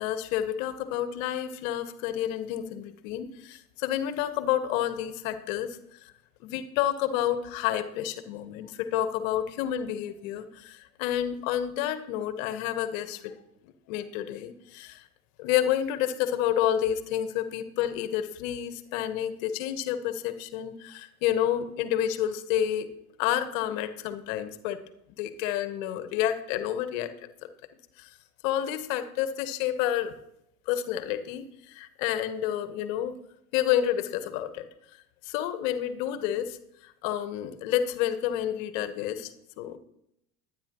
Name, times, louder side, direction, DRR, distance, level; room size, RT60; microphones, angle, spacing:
voice 1, 0.0-6.0 6.4-13.3 13.6-15.0 15.4-22.9 23.2-24.8 25.2-27.1 27.4-27.5 28.0-28.1 28.4-30.1 30.7-33.2 33.5-34.7 35.2-36.6 36.8-39.8, left 11 dB, 60° left, 11 dB, 1.3 m, -29 dB
22.0 x 9.5 x 3.1 m, 0.78 s
figure-of-eight pair, 70°, 44 cm